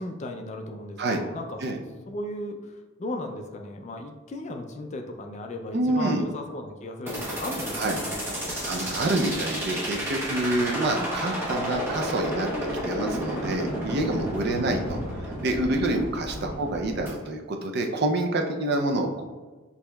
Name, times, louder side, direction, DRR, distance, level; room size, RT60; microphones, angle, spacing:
voice 1, 0.0-1.6 2.1-8.6 10.9-11.2 14.7-15.1 16.4-16.7, left 1 dB, 35° left, 4 dB, 0.3 m, -36 dB
voice 2, 5.7-6.2 7.8-8.0 8.7-12.5 12.8-15.0 15.4-19.2, right 2 dB, 50° right, 3 dB, 0.4 m, -27 dB
sound 1, 7.1-17.1, equal, 10° right, 0.9 m, -31 dB
6.3 x 2.8 x 2.2 m, 1.3 s
head